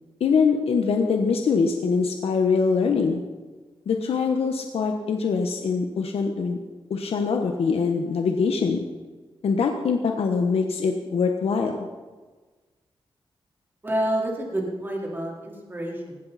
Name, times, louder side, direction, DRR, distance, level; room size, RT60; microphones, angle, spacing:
voice 1, 0.2-3.2 3.9-6.6 6.9-8.8 9.4-11.8, left 5 dB, 90° left, 4 dB, 1.3 m, -23 dB
voice 2, 13.8-16.2, right 1 dB, 20° right, -2 dB, 4.1 m, -28 dB
18.5 x 16.5 x 4.3 m, 1.3 s
wide cardioid pair, 145°, 10 cm